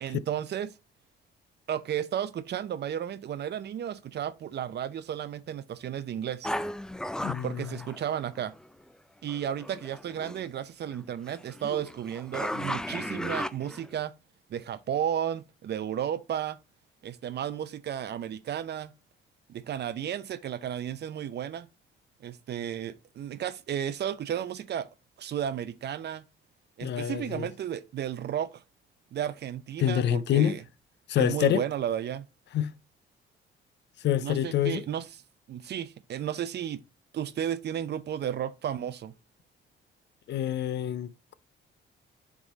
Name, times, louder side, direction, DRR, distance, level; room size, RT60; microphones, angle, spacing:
voice 1, 0.0-0.7 1.7-6.5 7.4-8.5 9.2-14.1 14.5-16.6 17.0-18.9 19.5-21.7 22.2-24.9 25.2-26.2 26.8-28.6 29.1-30.6 31.2-32.2 34.2-35.1 35.5-36.8 37.1-39.1, right 9 dB, 60° right, 0.7 m, -33 dB
sound 1, 6.4-8.6 9.3-10.5 10.9-14.0, left 1 dB, 5° left, 0.4 m, -35 dB
voice 2, 7.2-7.7 26.8-27.5 29.8-30.6 31.1-31.6 32.5-32.7 34.0-34.8 40.3-41.3, left 11 dB, 65° left, 0.5 m, -27 dB
7.4 x 3.6 x 4.0 m
cardioid pair, 90°, 20 cm